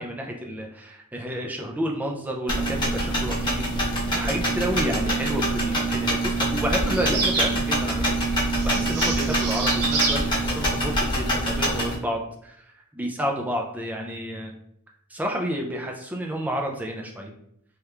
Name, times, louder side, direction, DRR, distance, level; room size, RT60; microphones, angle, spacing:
voice 1, 0.0-8.0 8.3-12.7 12.9-14.5 15.1-17.3, equal, 5° right, 1 dB, 0.3 m, -30 dB
sound 1, 2.5-11.9, right 1 dB, 20° left, 1.0 m, -25 dB
sound 2, 6.9-7.6 8.6-10.2, right 4 dB, 85° right, 0.8 m, -27 dB
3.3 x 2.9 x 2.3 m, 0.75 s
head